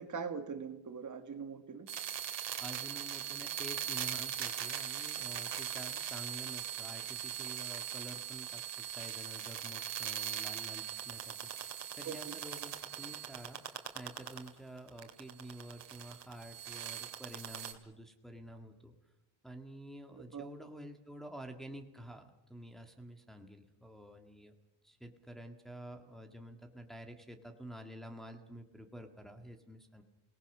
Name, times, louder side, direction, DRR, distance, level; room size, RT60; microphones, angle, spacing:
voice 1, 0.0-1.9 12.1-12.3 20.3-20.5, right 6 dB, 40° right, 7 dB, 1.7 m, -42 dB
sound 1, 1.9-14.5 14.8-17.7, right 10 dB, 60° right, 2.5 m, -40 dB
voice 2, 2.6-18.9 19.4-24.5 24.8-30.0, right 1 dB, ahead, 3 dB, 1.8 m, -49 dB
28.0 x 19.0 x 6.2 m, 0.96 s
cardioid pair, 135°, 48 cm